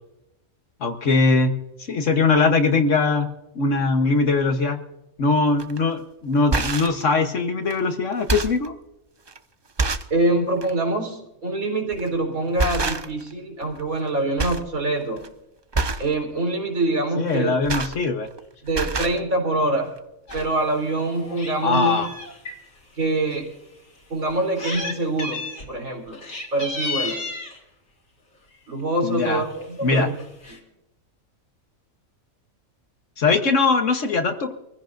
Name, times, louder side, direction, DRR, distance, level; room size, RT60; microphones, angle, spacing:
voice 1, 0.8-1.5 1.9-3.3 3.5-4.8 5.2-8.7 17.2-18.3 21.6-22.1 29.0-29.4 29.8-30.1 33.2-34.5, left 4 dB, 60° left, 6 dB, 1.4 m, -21 dB
sound 1, 5.6-5.8 6.3-7.0 7.7-7.8 8.1-8.7 9.3-9.4 9.8-10.2 10.6-10.7 11.9-12.2 12.6-13.3 13.6-14.1 14.4-14.7 15.0-15.3 15.7-16.1 17.3-18.4 18.7-19.2 20.0-20.1 20.3-20.5, right 3 dB, 40° right, 0.3 m, -26 dB
voice 2, 10.1-15.2 16.0-17.6 18.6-19.9 20.3-22.1 23.0-23.5 24.1-25.4 25.7-26.2 26.5-27.2 28.7-30.1 30.5-30.6, right 2 dB, 75° right, 0 dB, 4.2 m, -24 dB
Meow, 20.3-20.4 20.8-22.6 23.3-23.4 24.3-24.9 25.2-25.7 26.1-27.6 28.5-28.8 29.2-29.3 29.5-29.6 29.9-30.6, left 3 dB, 85° left, 3.4 m, -32 dB
25.0 x 15.5 x 2.6 m, 0.91 s
omnidirectional pair, 1.5 m